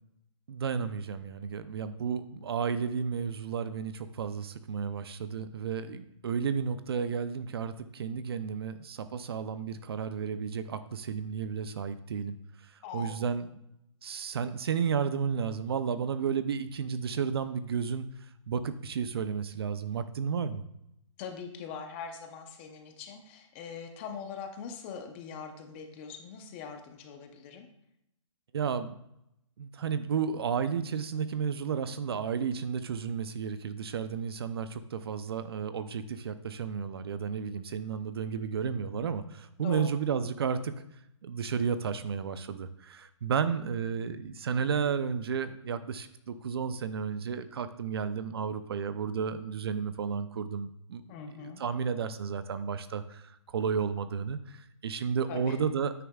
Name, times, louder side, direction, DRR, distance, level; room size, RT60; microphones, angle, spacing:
voice 1, 0.5-12.4 12.6-13.5 14.0-18.0 18.5-20.6 28.5-28.9 29.6-40.8 41.2-51.0 51.4-55.9, right 6 dB, 50° right, 12 dB, 0.6 m, -32 dB
voice 2, 12.8-13.2 21.2-27.7 39.6-39.9 51.1-51.6 55.3-55.6, left 6 dB, 20° left, 5 dB, 0.8 m, -42 dB
9.4 x 9.1 x 2.4 m, 0.80 s
hypercardioid pair, 160°, 16 cm